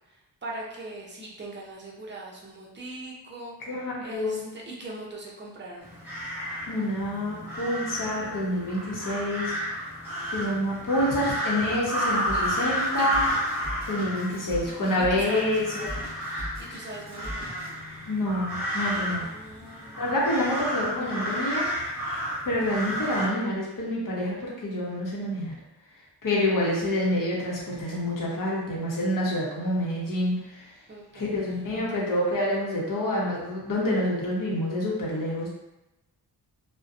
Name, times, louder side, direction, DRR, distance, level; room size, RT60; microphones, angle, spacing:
voice 1, 0.4-5.9 13.0-13.1 15.0-15.6 16.6-17.6 19.2-20.2 30.9-32.1, right 1 dB, 30° right, -4 dB, 0.6 m, -41 dB
voice 2, 3.7-4.4 6.7-9.5 10.3-13.2 13.9-16.0 18.1-19.3 20.0-21.7 22.4-25.5 26.2-30.6 31.1-35.5, left 1 dB, 55° left, -4 dB, 0.8 m, -27 dB
sound 1, 5.8-23.3, equal, 5° right, 1.0 m, -32 dB
Drum kit, 12.3-17.7, equal, 20° left, 1.1 m, -39 dB
2.5 x 2.1 x 2.4 m, 0.95 s
wide cardioid pair, 105°, 39 cm